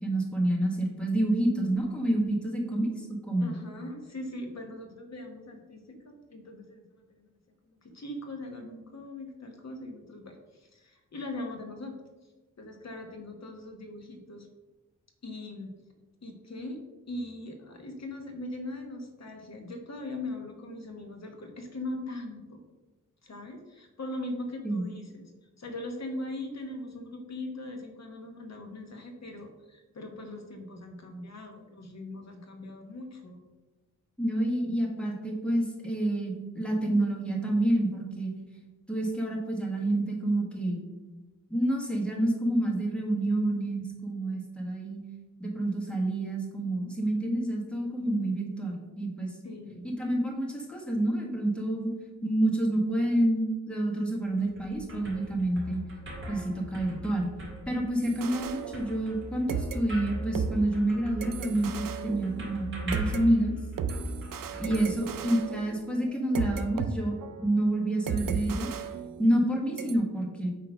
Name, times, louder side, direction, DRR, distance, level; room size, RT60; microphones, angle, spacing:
voice 1, 0.0-3.5 24.6-24.8 34.2-38.3 38.9-40.8 41.5-45.0 45.4-49.3 49.8-51.9 52.2-55.8 56.3-57.3 57.7-63.5 64.6-68.7 69.2-70.5, right 1 dB, 5° left, -1 dB, 1.4 m, -28 dB
voice 2, 3.4-7.3 7.7-12.0 12.6-14.5 15.2-15.7 16.2-16.8 17.1-22.6 23.2-25.2 25.6-33.4 49.4-49.9, left 1 dB, 55° left, 4 dB, 1.2 m, -40 dB
sound 1, 54.2-65.7, right 1 dB, 35° right, 1.9 m, -40 dB
sound 2, 58.0-59.2 59.5-63.2 63.8-66.9 67.2-67.5 68.1-69.5 69.8-69.9, right 6 dB, 80° right, 0.6 m, -35 dB
8.5 x 2.9 x 6.2 m, 1.1 s
wide cardioid pair, 165°, 32 cm